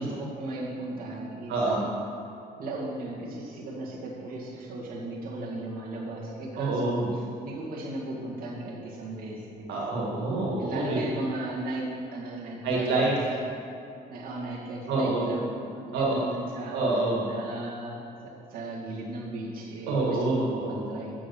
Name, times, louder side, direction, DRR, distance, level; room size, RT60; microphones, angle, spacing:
voice 1, 0.0-1.5 2.6-7.0 7.4-9.7 10.6-13.4 14.1-16.7 17.3-21.1, right 2 dB, 60° right, -5 dB, 2.0 m, -36 dB
voice 2, 1.5-1.8 6.6-7.1 9.7-11.0 12.6-13.2 14.9-15.4 15.9-16.2 16.7-17.3 19.9-20.9, right 2 dB, 85° right, -3 dB, 2.1 m, -27 dB
7.7 x 6.3 x 7.0 m, 2.6 s
cardioid pair, 110°, 17 cm